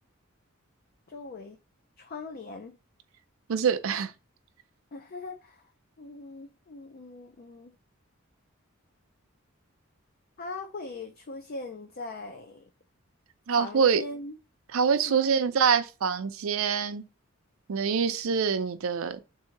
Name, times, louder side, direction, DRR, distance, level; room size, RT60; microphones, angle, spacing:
voice 1, 1.1-1.6 2.0-2.8 4.9-5.6 6.0-7.7 10.4-12.7 13.6-14.4 15.1-15.3, left 3 dB, 45° left, 0.4 m, -40 dB
voice 2, 3.5-4.1 13.5-14.0 14.7-17.0 17.7-19.2, right 6 dB, 75° right, 0.5 m, -25 dB
3.7 x 2.7 x 4.4 m
head